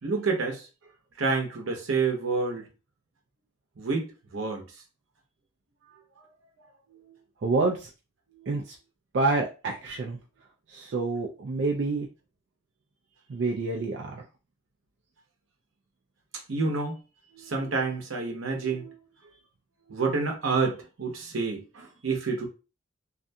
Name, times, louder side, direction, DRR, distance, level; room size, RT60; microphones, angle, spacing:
voice 1, 0.0-0.7 1.2-2.6 3.8-4.6 7.1-7.2 8.3-8.5 16.5-17.0 17.3-19.0 19.9-22.5, right 4 dB, 80° right, 0.8 m, -28 dB
voice 2, 7.4-7.9 8.5-8.8 9.1-10.2 10.7-12.1 13.3-14.2, right 3 dB, 60° right, 0.4 m, -28 dB
2.5 x 2.2 x 2.6 m
head